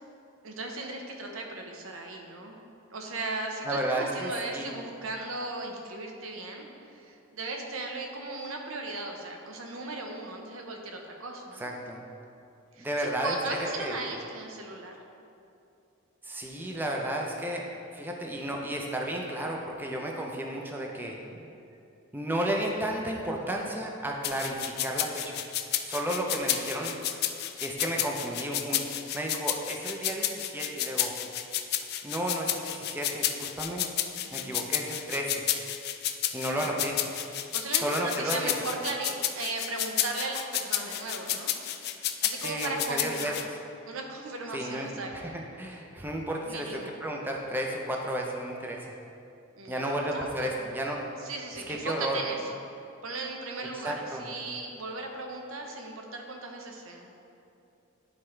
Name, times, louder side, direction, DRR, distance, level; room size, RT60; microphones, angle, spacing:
voice 1, 0.4-2.6 2.9-11.7 12.7-15.0 26.2-26.5 34.3-34.7 36.5-36.9 37.5-41.5 41.9-43.3 43.8-45.4 46.4-46.9 49.6-50.5 51.2-52.4 53.0-57.1, right 2 dB, 75° right, 2 dB, 0.8 m, -37 dB
voice 2, 3.6-4.7 11.6-12.0 12.8-14.0 16.2-17.6 17.9-21.2 22.1-25.4 25.9-27.0 27.6-28.8 29.1-31.1 32.0-33.9 34.3-35.4 36.3-37.0 37.8-38.5 42.4-43.3 44.5-45.2 45.6-46.7 47.0-48.9 49.7-51.0 51.7-52.2 53.7-54.3, right 1 dB, 10° right, 0 dB, 0.5 m, -32 dB
sound 1, 24.2-43.4, left 11 dB, 50° left, 0.3 m, -31 dB
10.5 x 4.3 x 3.2 m, 2.7 s
head